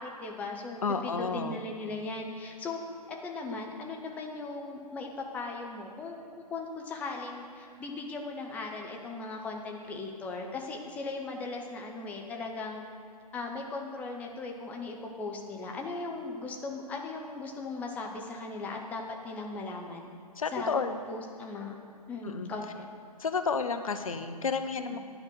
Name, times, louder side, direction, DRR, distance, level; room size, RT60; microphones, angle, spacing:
voice 1, 0.0-2.8 3.1-6.2 6.5-12.8 13.3-20.1 20.5-20.7 21.1-21.7 22.1-22.9 24.9-25.0, left 3 dB, 5° left, 1 dB, 0.6 m, -38 dB
voice 2, 0.8-1.6 20.4-21.0 22.2-22.5 23.2-25.0, left 5 dB, 60° left, 9 dB, 0.7 m, -31 dB
10.0 x 5.2 x 7.9 m, 2.3 s
figure-of-eight pair, 125°, 20 cm